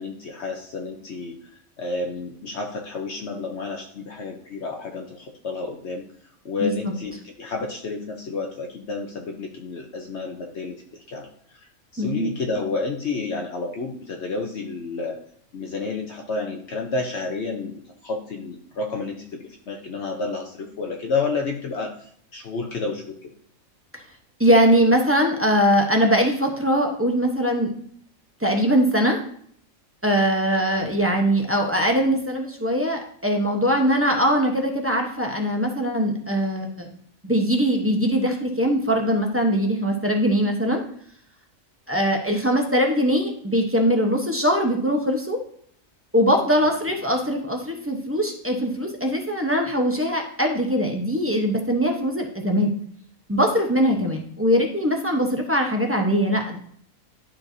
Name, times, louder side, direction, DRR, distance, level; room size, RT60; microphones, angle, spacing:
voice 1, 0.0-1.4 1.8-6.0 6.4-10.8 11.1-11.3 11.9-15.2 15.5-23.3 54.0-54.2, left 3 dB, 60° left, 2 dB, 1.0 m, -30 dB
voice 2, 6.6-6.9 12.0-12.3 23.9-24.0 24.4-27.7 28.4-29.2 30.0-36.9 37.2-40.8 41.9-45.4 46.1-52.7 53.3-56.6, equal, 10° right, 2 dB, 0.7 m, -21 dB
11.5 x 4.4 x 2.7 m, 0.62 s
omnidirectional pair, 1.4 m